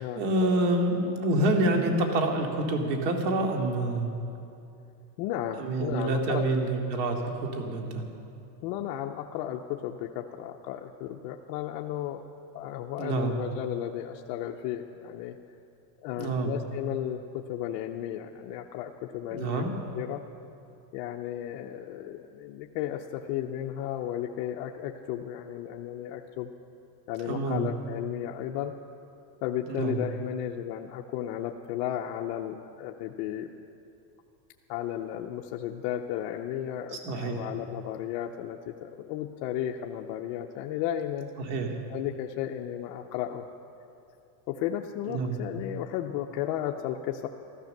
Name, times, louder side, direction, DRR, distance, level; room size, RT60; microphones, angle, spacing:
voice 1, 0.0-4.1 5.6-8.0 13.0-13.4 16.2-16.5 19.3-19.7 27.3-27.7 29.7-30.0 37.0-37.4 41.4-41.7 45.1-45.4, right 2 dB, 80° right, 2 dB, 2.5 m, -27 dB
voice 2, 5.2-6.5 8.6-12.2 12.5-15.4 16.0-19.6 19.9-20.2 20.9-26.5 27.1-28.7 29.4-33.5 34.7-41.3 41.9-43.5 44.5-47.3, left 11 dB, 45° left, 1 dB, 0.7 m, -34 dB
14.5 x 14.0 x 6.6 m, 2.6 s
supercardioid pair, 155°, 50 cm